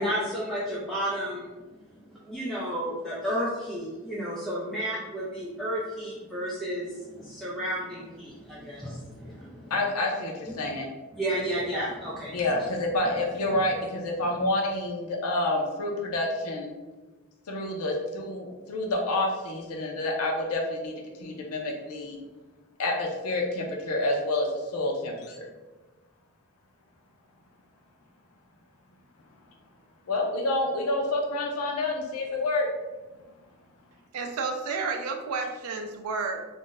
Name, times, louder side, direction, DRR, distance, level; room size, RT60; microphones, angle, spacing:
voice 1, 0.0-1.5 2.3-9.7 10.6-10.7 11.1-12.4, equal, ahead, -8 dB, 0.3 m, -32 dB
voice 2, 9.7-10.9 12.3-16.7 17.5-20.9 21.2-22.2 22.8-25.5 30.1-32.7, left 2 dB, 90° left, 0 dB, 0.5 m, -28 dB
voice 3, 34.1-36.5, right 4 dB, 80° right, 5 dB, 0.3 m, -31 dB
2.5 x 2.1 x 3.8 m, 1.2 s
head